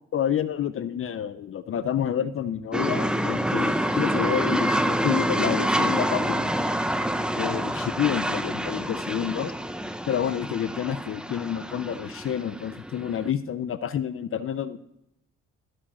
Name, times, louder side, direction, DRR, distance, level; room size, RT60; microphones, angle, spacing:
voice 1, 0.1-6.5 7.3-9.5 10.1-14.8, left 9 dB, 45° left, 12 dB, 0.5 m, -29 dB
sound 1, 2.7-13.3, right 1 dB, 5° right, 0.5 m, -27 dB
13.5 x 5.0 x 4.2 m, 0.85 s
cardioid pair, 90°, 30 cm